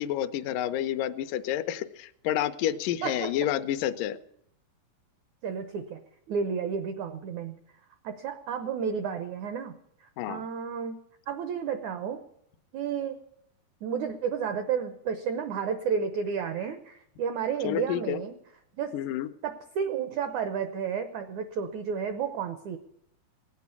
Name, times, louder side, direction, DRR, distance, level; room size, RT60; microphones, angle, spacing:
voice 1, 0.0-4.2 10.2-10.4 17.6-18.2 18.9-19.3, left 11 dB, 80° left, 9 dB, 2.0 m, -29 dB
voice 2, 3.0-3.3 5.4-6.0 6.3-7.6 8.0-9.7 10.3-10.9 11.3-12.2 12.7-13.2 13.8-18.3 18.8-18.9 19.4-22.8, right 7 dB, 80° right, 8 dB, 1.7 m, -31 dB
18.0 x 8.4 x 8.3 m, 0.73 s
omnidirectional pair, 4.5 m